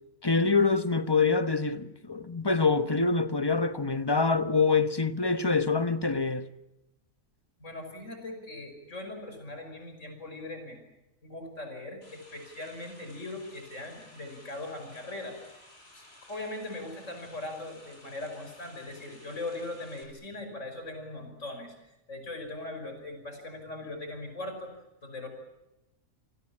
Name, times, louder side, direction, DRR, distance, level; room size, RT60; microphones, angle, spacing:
voice 1, 0.2-6.5, left 4 dB, 20° left, 1.0 m, -25 dB
voice 2, 7.6-10.8 11.2-15.6 15.9-21.7 22.1-24.7 25.0-25.3, left 2 dB, 65° left, 6.1 m, -40 dB
sound 1, 12.0-20.0, left 1 dB, 50° left, 6.0 m, -55 dB
29.0 x 19.5 x 8.6 m
omnidirectional pair, 1.4 m